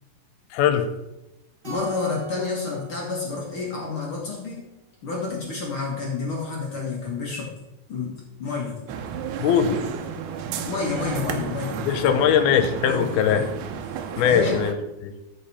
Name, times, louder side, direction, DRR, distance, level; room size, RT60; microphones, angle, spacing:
voice 1, 0.5-0.9 9.4-9.8 11.8-13.4 14.2-14.7 15.0-15.1, left 8 dB, 80° left, 9 dB, 2.7 m, -20 dB
voice 2, 1.6-4.6 5.0-7.5 7.9-8.8 10.7-12.3 12.9-13.5 14.2-14.6, left 4 dB, 50° left, -1 dB, 1.6 m, -29 dB
Keyboard (musical), 1.6-4.3, right 1 dB, 15° right, 2.0 m, -39 dB
sound 1, 8.9-14.7, right 7 dB, 90° right, 1.7 m, -33 dB
13.5 x 5.9 x 4.2 m, 0.93 s
omnidirectional pair, 4.4 m